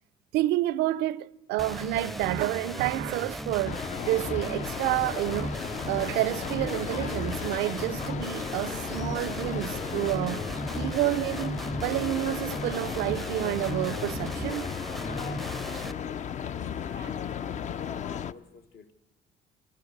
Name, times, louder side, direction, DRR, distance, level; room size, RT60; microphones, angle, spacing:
voice 1, 0.3-5.6 5.9-10.4 10.8-14.7 17.0-17.1, right 16 dB, 90° right, 0.6 m, -29 dB
sound 1, 1.6-15.9, right 1 dB, ahead, 0.6 m, -36 dB
sound 2, 3.6-18.3, left 8 dB, 45° left, 0.6 m, -35 dB
voice 2, 15.4-16.7 17.1-17.5 17.9-18.9, left 5 dB, 70° left, 1.7 m, -51 dB
28.0 x 14.5 x 6.6 m
cardioid pair, 110°, 17 cm